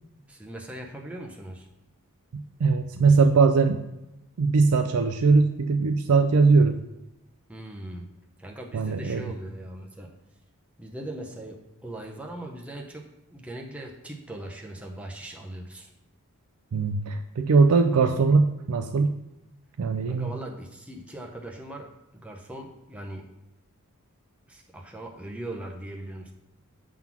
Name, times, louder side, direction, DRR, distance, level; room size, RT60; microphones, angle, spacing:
voice 1, 0.3-1.7 7.5-8.1 8.4-10.1 10.8-15.9 20.1-23.3 24.5-26.3, right 1 dB, 5° right, 0 dB, 0.6 m, -40 dB
voice 2, 2.3-3.8 4.4-6.8 8.7-9.2 16.7-19.1 19.8-20.3, right 4 dB, 80° right, 6 dB, 0.4 m, -21 dB
7.2 x 3.9 x 5.9 m, 0.94 s
head